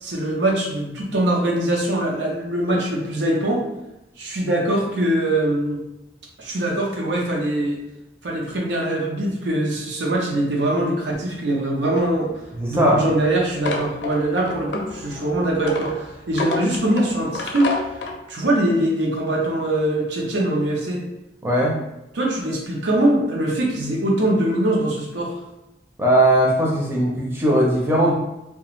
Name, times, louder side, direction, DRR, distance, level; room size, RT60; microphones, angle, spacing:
voice 1, 0.0-3.6 4.2-5.8 6.4-7.8 8.2-12.3 12.7-17.7 18.3-21.0 22.1-25.4, right 1 dB, 90° right, -1 dB, 0.6 m, -22 dB
sound 1, 12.0-18.2, left 3 dB, 80° left, 0.5 m, -30 dB
voice 2, 12.6-13.0 21.4-21.8 26.0-28.1, right 1 dB, 15° right, -3 dB, 0.5 m, -18 dB
2.4 x 2.2 x 2.9 m, 0.91 s
head